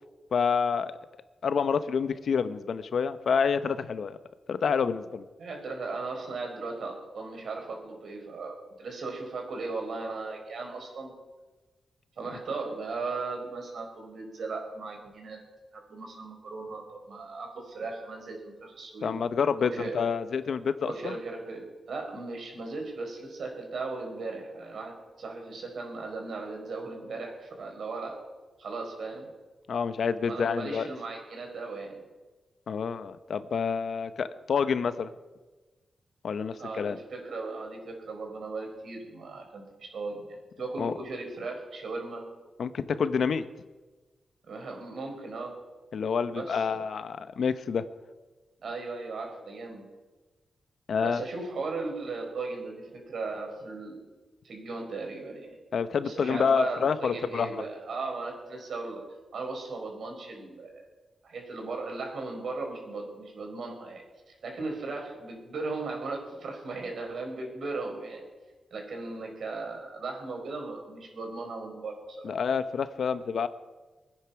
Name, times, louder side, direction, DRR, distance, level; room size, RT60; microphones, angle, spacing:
voice 1, 0.3-0.9 1.4-4.2 4.5-5.2 19.0-21.1 29.7-30.9 32.7-35.1 36.2-37.0 40.8-40.9 42.6-43.4 45.9-47.8 50.9-51.2 55.7-57.6 72.2-73.5, left 6 dB, 70° left, 12 dB, 0.9 m, -28 dB
voice 2, 5.4-11.1 12.2-15.4 15.7-19.1 19.6-20.0 20.9-28.2 28.6-29.3 30.3-32.0 36.6-42.2 44.5-45.5 46.3-46.8 48.6-49.8 51.0-54.0 54.4-55.6 56.1-59.0 59.3-60.8 61.2-64.0 64.4-68.2 68.7-71.9, right 3 dB, 70° right, 2 dB, 5.1 m, -37 dB
23.5 x 9.9 x 5.9 m, 1.2 s
wide cardioid pair, 105°, 0 cm